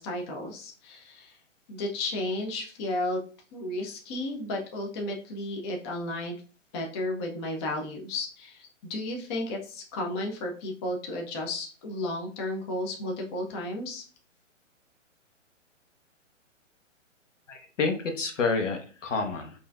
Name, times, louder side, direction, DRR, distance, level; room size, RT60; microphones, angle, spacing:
voice 1, 0.0-1.4 1.7-3.2 3.5-6.4 6.7-14.0, left 1 dB, 20° left, 1 dB, 0.5 m, -33 dB
voice 2, 17.5-19.5, left 4 dB, 75° left, 5 dB, 1.1 m, -29 dB
5.4 x 2.6 x 2.3 m, 0.38 s
hypercardioid pair, 130°, 38 cm